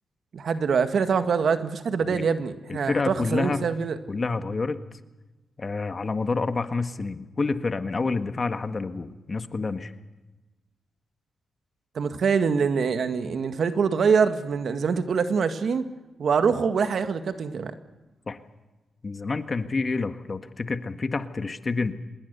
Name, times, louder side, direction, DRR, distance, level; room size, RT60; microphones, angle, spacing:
voice 1, 0.3-4.0 12.0-15.9 16.2-17.7, right 6 dB, 65° right, 9 dB, 1.8 m, -24 dB
voice 2, 2.7-3.7 4.1-4.8 5.6-9.9 18.3-18.4 19.0-21.9, left 3 dB, 40° left, 9 dB, 1.7 m, -28 dB
25.5 x 21.0 x 6.9 m, 1.1 s
cardioid pair, 75°, 0 cm